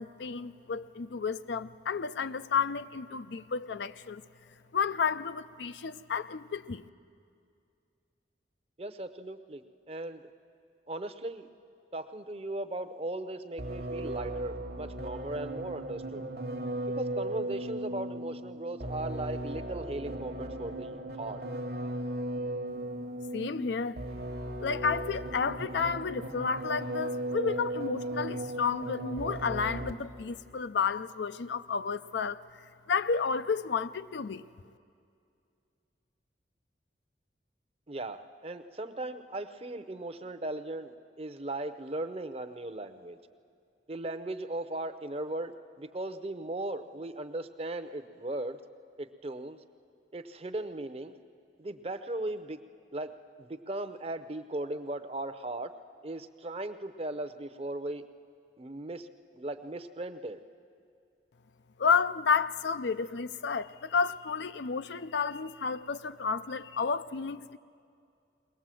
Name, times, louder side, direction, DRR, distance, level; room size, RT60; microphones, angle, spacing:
voice 1, 0.0-4.2 4.7-6.8 23.3-24.0 24.6-32.4 32.9-34.4 61.8-67.6, left 5 dB, 75° left, 0.5 m, -31 dB
voice 2, 8.8-10.2 10.9-11.5 11.9-16.3 16.9-21.4 37.9-43.2 43.9-48.6 49.0-49.6 50.1-51.1 51.6-52.6 52.9-55.7 56.0-58.0 58.6-59.1 59.3-60.4, right 2 dB, 35° right, 0.7 m, -38 dB
sound 1, 13.6-30.2, right 1 dB, 60° right, 1.1 m, -37 dB
21.5 x 18.5 x 7.6 m
head